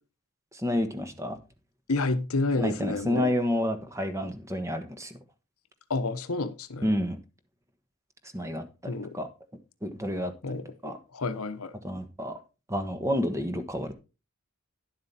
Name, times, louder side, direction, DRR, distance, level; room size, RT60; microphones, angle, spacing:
voice 1, 0.5-1.4 2.6-5.2 6.8-7.2 8.3-8.6 9.1-9.3 9.8-10.3 10.8-11.0 11.8-12.4 12.7-13.9, equal, 15° right, 1.3 m, -29 dB
voice 2, 1.9-3.3 5.9-6.9 8.9-9.1 10.4-11.7, left 3 dB, 75° left, 1.0 m, -30 dB
11.0 x 7.5 x 4.3 m
head